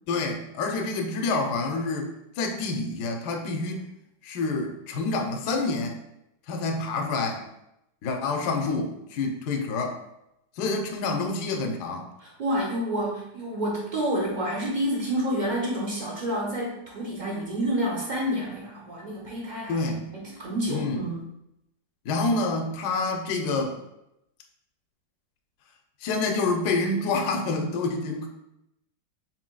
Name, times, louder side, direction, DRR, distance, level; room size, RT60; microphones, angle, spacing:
voice 1, 0.1-2.1 2.4-3.9 4.2-6.0 6.5-7.4 8.0-10.0 10.6-12.1 19.7-20.1 20.7-21.0 22.0-23.8 26.0-28.3, left 3 dB, 70° left, 3 dB, 1.1 m, -27 dB
voice 2, 12.2-21.2, equal, 45° right, -3 dB, 0.5 m, -29 dB
4.6 x 3.9 x 2.2 m, 0.84 s
omnidirectional pair, 2.0 m